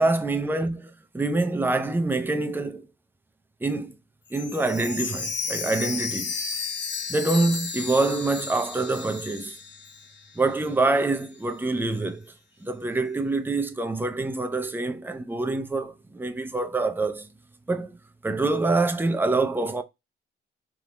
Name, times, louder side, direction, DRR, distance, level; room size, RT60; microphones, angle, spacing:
voice 1, 0.0-2.9 3.6-3.9 4.3-6.3 7.1-9.6 10.3-12.3 12.6-17.3 17.7-19.8, right 2 dB, 10° right, 0.7 m, -26 dB
Chime, 4.3-10.2 10.5-10.6 11.2-11.3, left 5 dB, 60° left, 1.3 m, -33 dB
3.6 x 3.5 x 4.1 m
cardioid pair, 90°, 20 cm